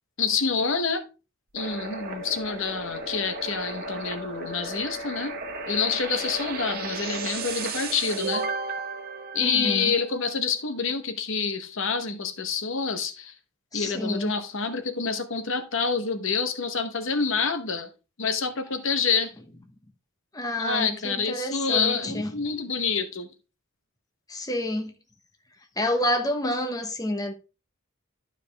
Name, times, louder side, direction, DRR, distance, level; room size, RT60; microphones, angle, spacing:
voice 1, 0.2-1.0 1.5-5.3 5.7-8.5 9.3-13.3 13.7-17.9 18.2-19.3 20.6-23.3, left 5 dB, 65° left, 1.0 m, -27 dB
sound 1, 1.6-10.2, right 3 dB, 45° right, 1.3 m, -34 dB
voice 2, 9.4-9.9 13.7-14.3 20.3-22.3 24.3-25.0 25.8-27.3, left 1 dB, 15° left, 1.0 m, -28 dB
12.0 x 5.1 x 3.3 m
head